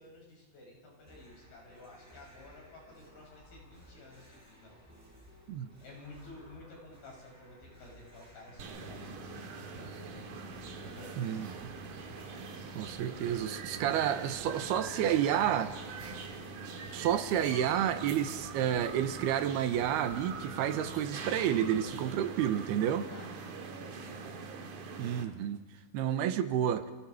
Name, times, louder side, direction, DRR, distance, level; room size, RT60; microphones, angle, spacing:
voice 1, 0.0-4.8 5.8-10.3 10.8-11.3 23.0-24.3 25.7-25.9, left 2 dB, 70° left, 8.8 m, -53 dB
sound 1, 1.1-20.8, equal, 5° right, 7.5 m, -57 dB
sound 2, 8.5-10.5 10.8-14.5 14.8-18.5 18.8-22.5 22.8-23.7, right 3 dB, 30° right, 4.2 m, -56 dB
sound 3, 8.6-25.2, right 4 dB, 60° right, 3.1 m, -43 dB
voice 2, 11.2-11.7 12.8-15.7 16.9-23.1 25.0-25.6 25.9-26.9, right 10 dB, 85° right, 3.1 m, -30 dB
30.0 x 28.0 x 4.9 m
omnidirectional pair, 4.5 m